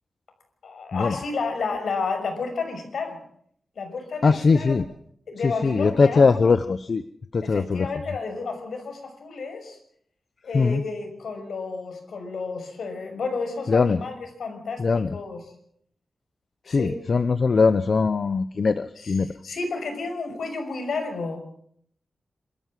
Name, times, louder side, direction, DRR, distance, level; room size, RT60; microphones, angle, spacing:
voice 1, 0.6-3.2 3.8-4.8 5.3-6.3 7.4-9.8 10.4-15.4 16.7-17.0 19.0-19.1 19.4-21.4, left 4 dB, 75° left, 5 dB, 6.0 m, -31 dB
voice 2, 4.2-4.8 5.4-7.0 7.3-7.9 10.5-10.8 13.7-14.0 14.8-15.2 16.7-19.3, left 4 dB, 50° left, 12 dB, 0.8 m, -21 dB
27.5 x 14.0 x 7.6 m, 0.67 s
wide cardioid pair, 130°, 0 cm